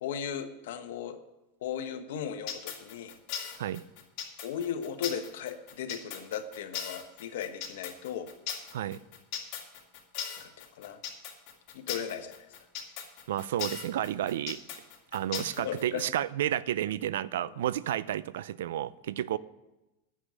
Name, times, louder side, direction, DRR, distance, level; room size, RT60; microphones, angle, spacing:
voice 1, 0.0-1.2 1.6-3.2 4.4-8.3 10.4-11.0 11.7-12.5 15.4-16.0 17.4-17.7, left 8 dB, 75° left, 1.2 m, -37 dB
sound 1, 2.5-16.0, left 8 dB, 50° left, 2.6 m, -38 dB
voice 2, 13.3-14.6 15.1-19.4, right 12 dB, 80° right, 0.5 m, -31 dB
10.0 x 7.2 x 8.9 m
supercardioid pair, 130°, 0 cm